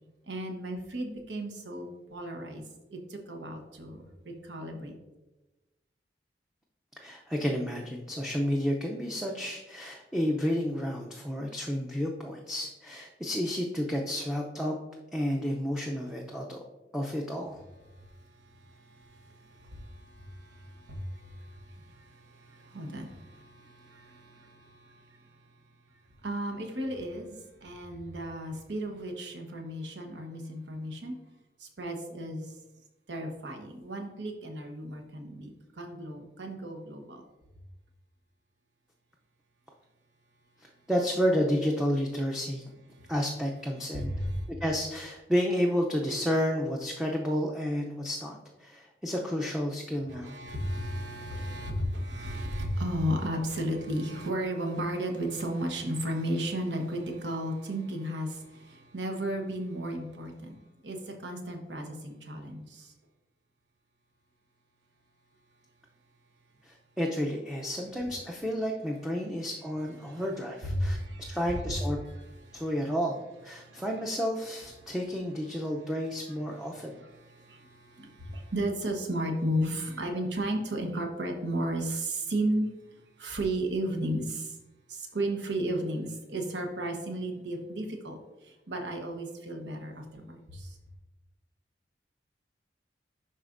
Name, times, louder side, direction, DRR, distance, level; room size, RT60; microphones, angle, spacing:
voice 1, 0.3-2.6 2.9-5.0 18.0-25.4 26.2-31.2 31.6-32.5 33.1-37.2 42.9-43.1 43.9-44.5 50.1-60.6 60.8-62.9 70.0-70.2 70.6-71.4 71.7-71.8 72.4-72.6 73.6-73.8 74.8-74.9 76.7-82.7 83.2-84.6 84.9-90.8, right 1 dB, 85° right, 3 dB, 1.0 m, -34 dB
voice 2, 7.0-14.8 15.1-16.6 16.9-17.6 40.6-42.6 43.1-44.1 44.6-50.4 66.6-72.0 72.5-77.0, equal, 5° right, -1 dB, 0.5 m, -31 dB
11.0 x 4.1 x 2.5 m, 1.1 s
head